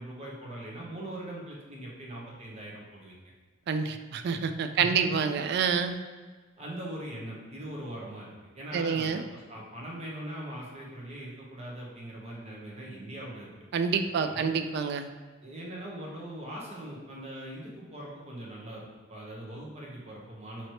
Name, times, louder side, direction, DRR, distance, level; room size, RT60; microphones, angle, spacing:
voice 1, 0.0-3.2 4.7-5.2 6.6-13.5 14.2-14.5 15.4-20.7, right 1 dB, 35° right, -4 dB, 0.9 m, -41 dB
voice 2, 3.7-6.0 8.7-9.2 13.7-15.1, right 6 dB, 55° right, 8 dB, 0.3 m, -28 dB
3.1 x 2.9 x 4.2 m, 1.4 s
head